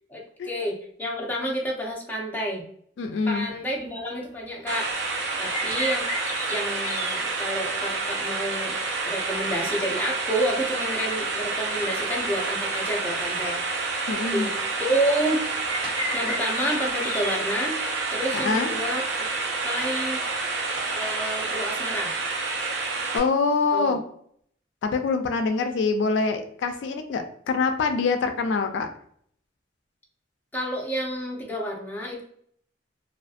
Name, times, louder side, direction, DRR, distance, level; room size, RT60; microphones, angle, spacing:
voice 1, 0.1-2.7 3.3-4.9 5.4-6.1 6.5-8.8 9.1-13.6 14.3-14.5 14.8-15.4 16.1-17.8 18.1-19.3 19.6-20.2 20.9-22.1 23.7-24.0 30.5-32.2, equal, 10° left, -2 dB, 0.5 m, -29 dB
voice 2, 3.0-3.5 14.1-14.5 18.3-18.7 23.1-24.0 24.8-28.9, left 4 dB, 80° left, 6 dB, 0.3 m, -25 dB
sound 1, 3.5-3.6 4.1-4.2 4.5-4.7 5.3-7.2 11.2-11.3 12.1-13.0 13.4-13.5 13.9-14.0 14.2-15.2 15.7-17.4, left 1 dB, 45° left, 0.7 m, -34 dB
sound 2, 4.7-23.2, right 3 dB, 85° right, 0.5 m, -29 dB
sound 3, 4.9-21.5, right 1 dB, 55° right, 1.3 m, -43 dB
2.5 x 2.4 x 2.4 m, 0.63 s
head